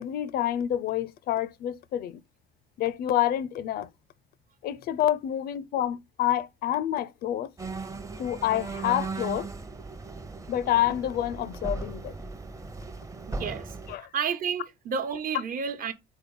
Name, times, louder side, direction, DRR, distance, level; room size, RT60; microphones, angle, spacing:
voice 1, 0.0-2.2 2.8-3.9 4.6-7.5 8.2-9.5 10.5-12.1 13.9-14.1, left 12 dB, 65° left, 0.4 m, -28 dB
sound 1, 7.6-14.0, right 3 dB, 20° right, 0.7 m, -37 dB
voice 2, 13.3-15.9, right 6 dB, 55° right, 1.0 m, -31 dB
4.4 x 4.0 x 5.3 m
cardioid pair, 110°, 17 cm